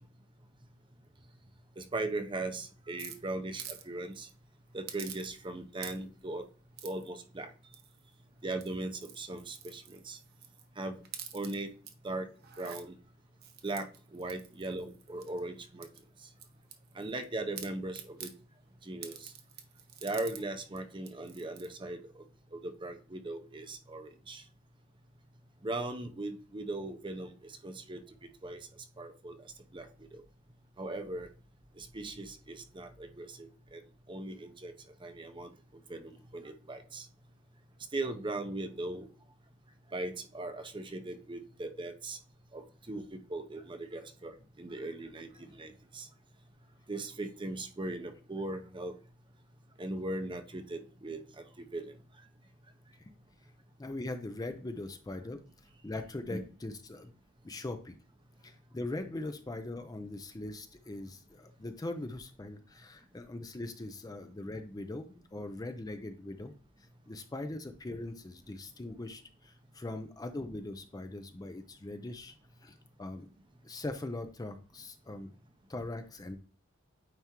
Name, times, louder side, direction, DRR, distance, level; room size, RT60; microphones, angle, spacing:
voice 1, 1.8-4.3 4.7-6.4 6.8-7.5 8.4-10.2 10.8-11.0 11.3-11.7 12.0-12.3 12.6-13.0 13.6-15.9 16.9-18.3 18.8-19.3 20.0-22.0 22.5-24.4 25.6-28.0 28.4-28.7 29.0-29.4 29.7-29.9 30.1-30.2 30.8-31.3 31.8-33.8 34.1-34.7 35.0-35.5 35.9-37.1 37.9-39.1 39.9-42.2 42.5-46.1 46.9-48.9 49.8-51.9 56.3-56.4, right 2 dB, 25° right, 7 dB, 0.7 m, -39 dB
sound 1, 3.0-3.8 4.1-4.3 4.9-5.5 5.8-6.2 6.8-7.1 7.7-8.1 8.5-10.7 11.0-11.9 12.4-12.8 13.4-15.4 15.8-17.2 17.5-18.3 19.0-20.4 20.8-20.9 21.0-21.7, right 9 dB, 50° right, 0.8 m, -47 dB
voice 2, 53.8-55.4 55.8-57.1 57.4-58.0 58.4-66.5 67.1-72.3 72.6-73.3 73.6-75.3 75.7-76.4, left 2 dB, 20° left, 7 dB, 0.5 m, -41 dB
9.1 x 3.5 x 3.0 m, 0.39 s
head